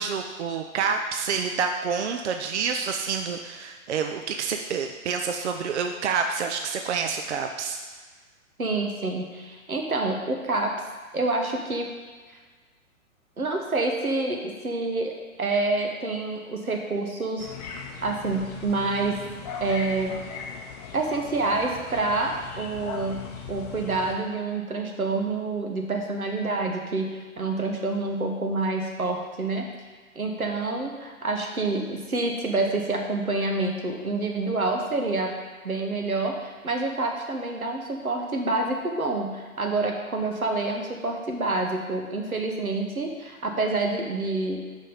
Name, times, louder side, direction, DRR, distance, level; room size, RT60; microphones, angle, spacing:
voice 1, 0.0-7.8, right 6 dB, 55° right, 5 dB, 0.6 m, -28 dB
voice 2, 8.6-10.7 11.1-11.9 13.4-15.1 15.4-17.5 18.0-19.2 19.6-20.1 20.9-29.7 30.1-35.3 35.6-44.6, right 3 dB, 85° right, 2 dB, 1.3 m, -27 dB
sound 1, 17.4-24.2, left 6 dB, 30° left, 0.8 m, -39 dB
5.4 x 5.3 x 5.6 m, 1.4 s
figure-of-eight pair, 125°, 42 cm